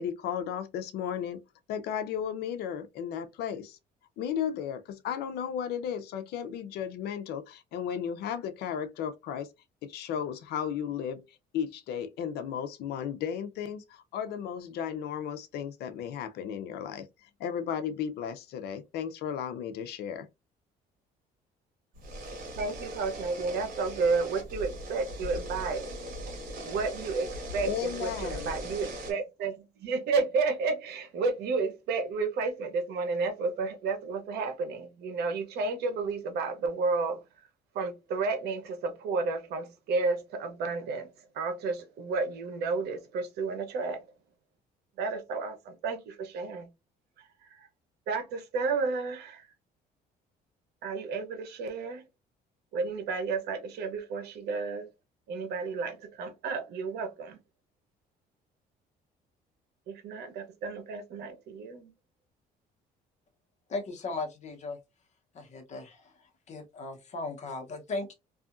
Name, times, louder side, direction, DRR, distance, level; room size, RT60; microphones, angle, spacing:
voice 1, 0.0-1.4 1.7-3.8 4.2-9.5 9.8-11.2 11.5-20.3 27.6-28.6, left 8 dB, 75° left, 0.5 m, -34 dB
sound 1, 21.9-29.1, equal, 55° right, 1.3 m, -39 dB
voice 2, 22.6-25.9 26.6-37.2 37.7-41.1 41.3-44.0 45.0-46.7 47.2-47.7 48.1-49.5 50.8-52.0 52.7-54.9 55.3-57.4 59.9-61.9, right 4 dB, 75° right, 0.8 m, -32 dB
voice 3, 63.7-64.8 65.3-66.0 66.5-68.1, left 3 dB, 45° left, 0.9 m, -37 dB
2.7 x 2.4 x 2.4 m
cardioid pair, 110°, 17 cm